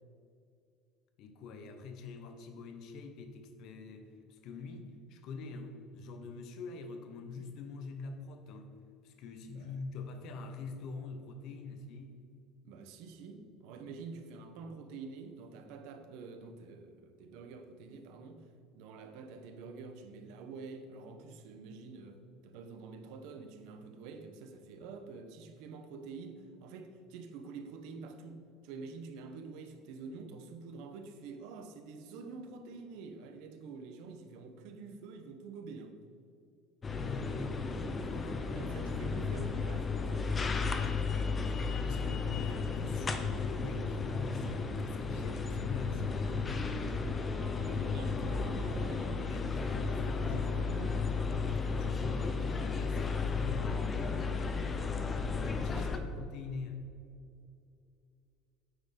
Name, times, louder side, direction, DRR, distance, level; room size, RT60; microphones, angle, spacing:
voice 1, 1.2-8.8 9.0-12.2 36.8-37.6 38.0-39.3 41.7-46.9 49.2-50.5 51.5-54.0 55.3-56.8, left 4 dB, 60° left, 7 dB, 0.9 m, -44 dB
voice 2, 9.5-9.8 12.6-18.5 18.7-36.0 38.4-40.4 47.3-49.2 49.7-51.1 55.5-56.1, right 4 dB, 75° right, 7 dB, 0.9 m, -47 dB
sound 1, 36.8-56.0, left 4 dB, 25° left, 0.7 m, -34 dB
8.8 x 4.5 x 5.1 m, 2.5 s
cardioid pair, 125°, 0 cm